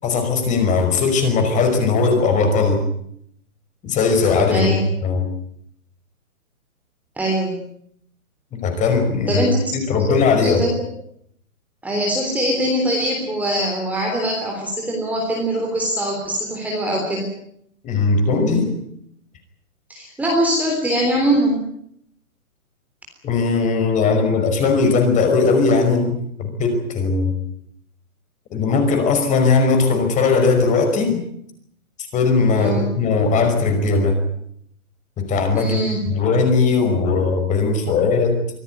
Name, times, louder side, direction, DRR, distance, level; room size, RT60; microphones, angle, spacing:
voice 1, 0.0-2.8 3.8-5.3 8.5-9.5 9.7-10.6 17.8-18.7 23.2-27.3 28.5-31.2 32.1-34.2 35.2-35.8 36.1-38.4, left 4 dB, 15° left, 6 dB, 5.4 m, -18 dB
voice 2, 4.5-4.9 7.2-7.6 9.3-9.6 10.0-10.2 10.4-10.8 11.8-17.3 19.9-21.7 32.6-32.9 35.5-36.1, right 1 dB, 5° right, -1 dB, 3.5 m, -22 dB
25.0 x 17.5 x 9.6 m, 0.71 s
hypercardioid pair, 150°, 44 cm